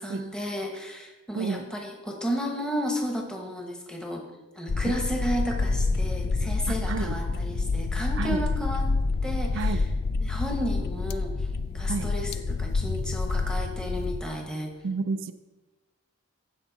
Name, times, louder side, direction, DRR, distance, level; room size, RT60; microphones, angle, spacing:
voice 1, 0.0-4.2 4.5-8.9 9.2-9.9 10.2-11.5 11.7-14.7, equal, 5° left, 1 dB, 1.2 m, -33 dB
voice 2, 1.4-1.7 6.7-7.2 8.2-8.4 9.5-9.9 11.9-12.1 14.8-15.3, right 4 dB, 60° right, 10 dB, 0.4 m, -30 dB
sound 1, 4.7-14.2, left 3 dB, 50° left, 0.4 m, -28 dB
15.5 x 5.5 x 4.0 m, 1.1 s
head